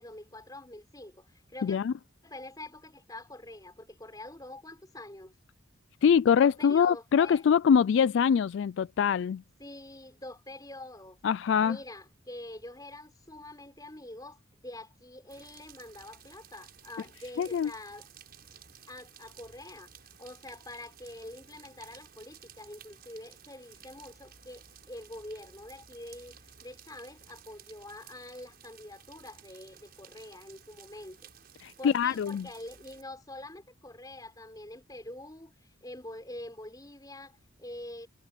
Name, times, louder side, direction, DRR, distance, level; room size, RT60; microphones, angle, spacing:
voice 1, 0.0-1.8 2.2-5.3 6.4-7.5 9.6-11.2 11.6-18.1 18.9-19.9 20.2-31.2 31.8-38.1, left 1 dB, 20° left, 4.5 m, -45 dB
voice 2, 1.6-1.9 6.0-9.4 11.2-11.8 17.4-17.7 31.6-32.5, left 7 dB, 60° left, 0.3 m, -24 dB
sound 1, 15.3-33.0, right 8 dB, 50° right, 6.9 m, -55 dB
head